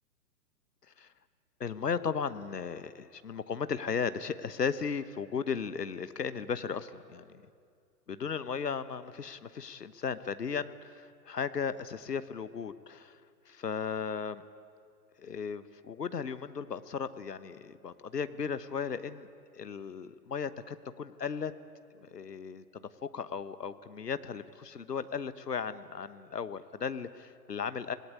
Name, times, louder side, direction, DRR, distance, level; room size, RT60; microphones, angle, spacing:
voice 1, 1.6-7.3 8.1-13.2 13.5-14.4 15.2-19.3 19.5-21.5 22.0-27.9, left 6 dB, 75° left, 14 dB, 1.2 m, -36 dB
26.0 x 18.0 x 9.7 m, 2.4 s
figure-of-eight pair, 120°, 49 cm